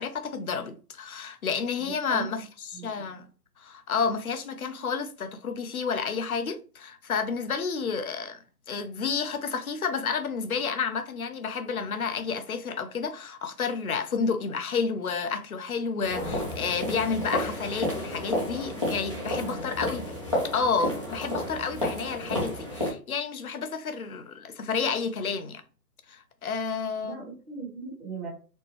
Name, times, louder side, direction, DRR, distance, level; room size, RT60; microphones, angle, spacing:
voice 1, 0.0-3.2 3.6-8.4 8.7-20.1 20.5-25.6 26.1-27.3, left 5 dB, 60° left, 0.7 m, -30 dB
voice 2, 1.8-2.3 2.7-2.8 19.1-19.7 27.0-28.3, right 5 dB, 10° right, 1.1 m, -39 dB
sound 1, 16.0-22.9, left 1 dB, 20° left, 0.6 m, -31 dB
4.3 x 2.1 x 3.0 m
figure-of-eight pair, 160°, 50 cm